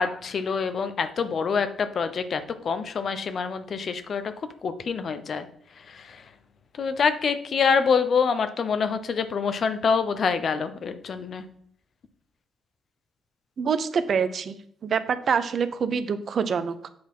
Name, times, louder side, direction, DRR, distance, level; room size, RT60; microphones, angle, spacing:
voice 1, 0.0-4.2 4.6-5.5 5.8-6.3 6.7-11.5, left 5 dB, 55° left, 10 dB, 0.8 m, -26 dB
voice 2, 13.6-14.6 14.8-16.9, right 6 dB, 60° right, 12 dB, 0.7 m, -26 dB
7.7 x 4.2 x 5.5 m, 0.64 s
supercardioid pair, 55°, 0 cm